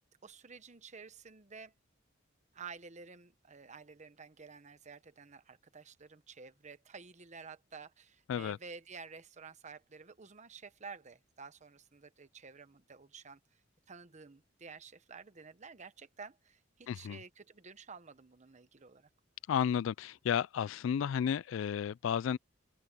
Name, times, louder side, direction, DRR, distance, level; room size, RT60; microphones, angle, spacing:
voice 1, 0.2-1.7 2.5-13.4 13.9-19.1, right 5 dB, 40° right, 1.1 m, -51 dB
voice 2, 16.9-17.2 19.5-22.4, left 8 dB, 75° left, 0.3 m, -32 dB
open air
head